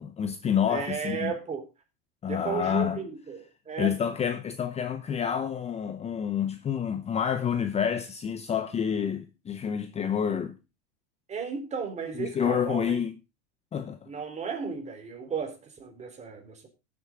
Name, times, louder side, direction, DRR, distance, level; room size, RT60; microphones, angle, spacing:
voice 1, 0.0-1.3 2.2-3.0 3.8-10.6 12.1-13.1 13.7-14.1, left 8 dB, 20° left, 0.8 m, -28 dB
voice 2, 0.6-1.6 2.3-3.4 3.7-3.9 11.3-13.0 14.1-16.7, right 6 dB, 25° right, 3.6 m, -34 dB
17.5 x 7.7 x 3.7 m
supercardioid pair, 130°, 29 cm